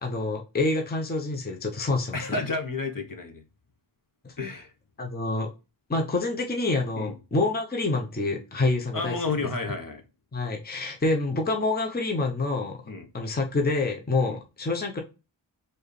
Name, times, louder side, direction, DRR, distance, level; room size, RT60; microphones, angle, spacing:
voice 1, 0.0-2.4 4.2-4.3 5.0-5.5 5.9-9.5 10.3-12.8 13.1-15.0, left 2 dB, 20° left, 0.8 m, -27 dB
voice 2, 2.1-3.4 4.4-4.7 7.0-7.1 8.9-10.0 12.9-13.1 14.3-14.4, left 3 dB, 45° left, 1.0 m, -31 dB
4.4 x 2.7 x 3.2 m
wide cardioid pair, 60°, 48 cm